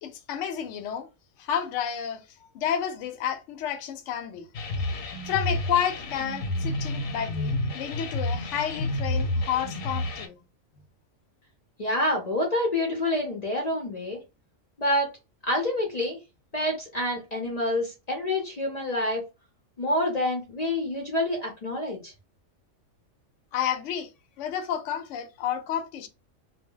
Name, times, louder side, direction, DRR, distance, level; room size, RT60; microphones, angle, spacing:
voice 1, 0.0-1.1 1.4-2.2 2.5-4.5 5.3-10.4 23.5-24.1 24.4-26.1, left 9 dB, 70° left, 0.8 m, -30 dB
sound 1, 4.5-10.3, left 1 dB, 90° left, 1.1 m, -30 dB
voice 2, 11.8-14.2 14.8-15.1 15.4-16.2 16.5-19.2 19.8-22.1, left 1 dB, 45° left, 0.6 m, -27 dB
2.2 x 2.1 x 3.6 m
omnidirectional pair, 1.4 m